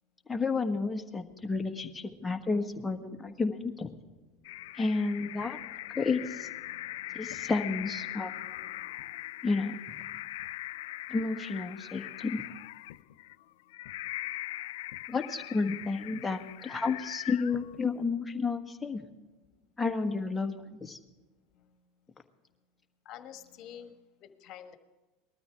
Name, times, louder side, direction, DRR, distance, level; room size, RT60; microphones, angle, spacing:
voice 1, 0.3-3.9 4.7-5.6 5.9-6.5 7.1-8.3 9.4-9.7 11.1-12.5 15.1-19.0 19.8-21.0, left 4 dB, 15° left, 5 dB, 1.4 m, -31 dB
sound 1, 4.4-18.0, left 16 dB, 70° left, 0.3 m, -41 dB
voice 2, 7.0-7.3 8.6-9.1 21.5-21.8 23.0-24.8, left 9 dB, 45° left, 7 dB, 1.5 m, -50 dB
20.5 x 13.0 x 3.5 m, 1.2 s
hypercardioid pair, 90°, 0 cm